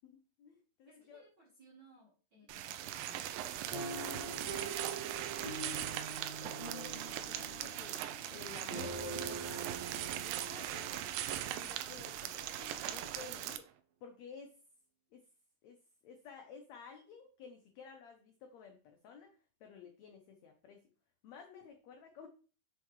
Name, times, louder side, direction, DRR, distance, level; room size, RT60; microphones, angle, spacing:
voice 1, 0.0-1.3 2.4-2.6 3.7-3.9 4.6-8.0 8.3-10.9 11.5-13.6 14.0-14.6 15.1-15.2 15.6-15.8 16.0-19.3 19.6-20.8 21.2-22.3, left 6 dB, 80° left, 4 dB, 1.6 m, -53 dB
voice 2, 0.9-3.3, right 2 dB, 55° right, -3 dB, 1.3 m, -62 dB
sound 1, 2.5-13.6, right 12 dB, 85° right, 2.3 m, -40 dB
sound 2, 3.7-11.8 12.4-12.5 12.8-13.0, right 2 dB, 25° right, 0.8 m, -45 dB
6.7 x 4.6 x 3.1 m, 0.36 s
omnidirectional pair, 4.0 m